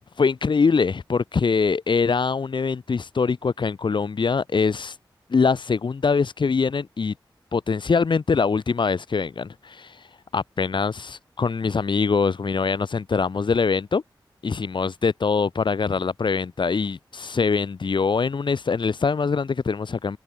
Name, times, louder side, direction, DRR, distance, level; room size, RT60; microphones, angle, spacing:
voice 1, 0.2-4.9 5.3-7.1 7.5-10.0 10.3-14.0 14.4-20.2, left 5 dB, 70° left, 4.1 m, -23 dB
wide cardioid pair, 110°, 8 cm